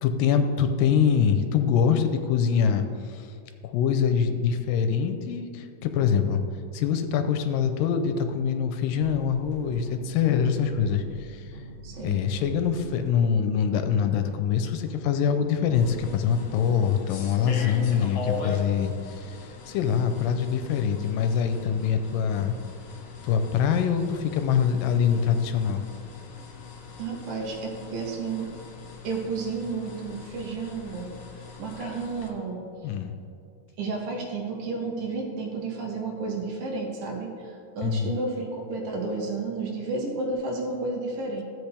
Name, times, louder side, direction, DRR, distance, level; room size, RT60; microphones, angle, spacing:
voice 1, 0.0-3.3 3.6-6.4 6.7-11.4 12.0-19.4 19.7-22.5 23.2-25.8 32.8-33.1 37.8-38.1, left 7 dB, 85° left, 7 dB, 2.3 m, -24 dB
sound 1, 9.0-15.7, right 2 dB, 60° right, 1.9 m, -44 dB
voice 2, 11.8-12.2 27.0-28.5 29.0-31.2 31.6-32.6 33.8-41.4, right 3 dB, 90° right, 0 dB, 3.2 m, -32 dB
sound 2, 15.7-32.3, left 4 dB, 60° left, 2.1 m, -41 dB
14.0 x 7.8 x 3.4 m, 2.4 s
omnidirectional pair, 4.0 m